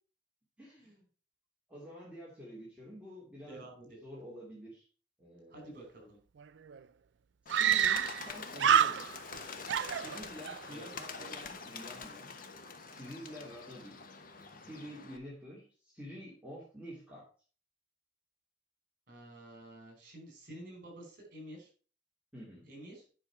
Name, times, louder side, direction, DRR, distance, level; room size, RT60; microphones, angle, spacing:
voice 1, 0.6-1.0 1.7-3.7 4.0-4.9 5.2-5.7 7.4-9.2 9.9-12.3 12.8-14.0 14.5-17.2 22.3-22.7, equal, 5° right, -6 dB, 2.9 m, -49 dB
voice 2, 3.5-4.0 5.5-6.2 10.7-10.9 19.1-21.7 22.7-23.1, right 1 dB, 55° right, 2 dB, 4.9 m, -49 dB
Screaming, 6.4-6.5 6.7-6.8 7.5-8.3 8.6-9.4 9.7-10.6, right 9 dB, 85° right, 0.4 m, -27 dB
Bird, 7.5-15.2, left 4 dB, 55° left, 1.2 m, -45 dB
10.0 x 5.6 x 4.8 m, 0.38 s
head